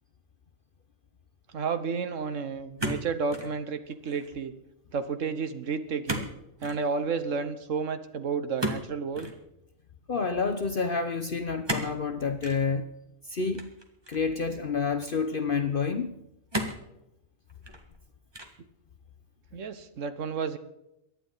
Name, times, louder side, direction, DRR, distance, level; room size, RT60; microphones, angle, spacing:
voice 1, 1.5-4.5 4.9-6.3 6.6-9.3 19.5-20.6, right 5 dB, 70° right, 10 dB, 1.4 m, -31 dB
sound 1, 2.8-3.5 3.9-4.3 6.1-6.3 6.6-6.8 8.6-9.4 11.6-12.0 12.4-12.6 13.5-14.3 15.0-15.1 16.5-16.9 17.5-18.0 18.3-18.7, right 1 dB, 20° right, 1.6 m, -33 dB
voice 2, 10.1-12.9 13.3-13.7 14.1-16.2, left 5 dB, 50° left, 8 dB, 0.9 m, -29 dB
23.5 x 10.0 x 3.9 m, 0.86 s
omnidirectional pair, 1.4 m